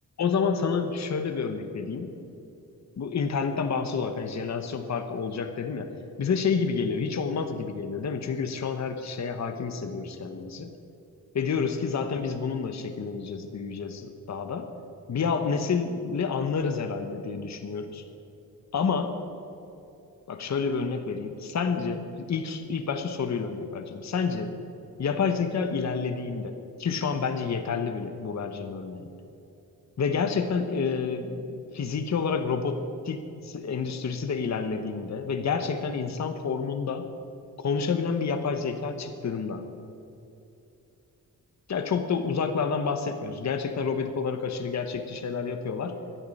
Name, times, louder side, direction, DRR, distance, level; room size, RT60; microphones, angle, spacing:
voice 1, 0.2-2.1 3.0-5.9 6.2-10.7 11.3-14.7 15.1-18.0 18.7-19.2 20.3-24.5 25.0-26.5 26.8-29.1 30.0-32.8 33.0-37.1 37.6-39.6 41.7-46.0, left 5 dB, 50° left, 7 dB, 1.0 m, -29 dB
12.0 x 10.5 x 9.9 m, 2.8 s
wide cardioid pair, 140°, 35 cm